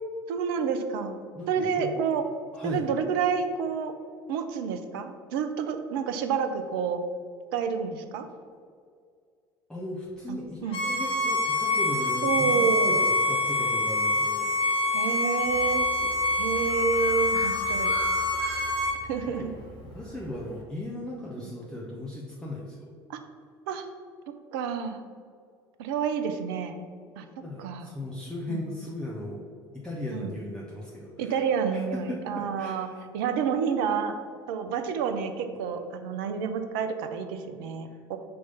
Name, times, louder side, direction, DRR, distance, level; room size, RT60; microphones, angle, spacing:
voice 1, 0.3-1.2 1.5-2.2 2.6-3.9 4.3-7.0 7.5-8.3 10.3-10.8 12.2-13.0 14.9-16.1 16.4-17.9 19.1-19.5 21.4-21.5 23.1-23.2 23.7-23.8 24.5-25.0 25.8-26.8 27.2-27.3 27.6-27.9 28.5-28.6 30.1-30.3 31.2-32.9 33.1-34.2 34.5-38.2, right 6 dB, 60° right, 7 dB, 0.5 m, -29 dB
voice 2, 1.3-2.0 2.5-2.8 9.7-14.5 19.4-19.5 19.8-22.9 27.4-29.4 29.7-31.4 31.7-32.9, left 1 dB, 5° left, -5 dB, 0.9 m, -37 dB
Bowed string instrument, 10.7-19.0, left 2 dB, 45° left, 1.1 m, -26 dB
Bird, 15.4-20.6, equal, 65° left, 1.3 m, -42 dB
5.6 x 3.2 x 5.3 m, 2.2 s
figure-of-eight pair, 60°, 13 cm